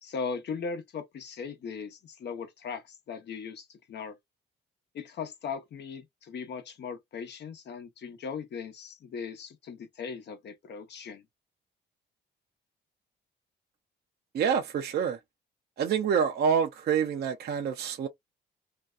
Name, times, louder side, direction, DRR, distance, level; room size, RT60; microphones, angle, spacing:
voice 1, 0.0-4.2 4.9-11.2, left 5 dB, 60° left, 0.8 m, -38 dB
voice 2, 14.3-15.2 15.8-18.1, right 7 dB, 55° right, 0.5 m, -27 dB
2.6 x 2.2 x 2.3 m
cardioid pair, 90°, 20 cm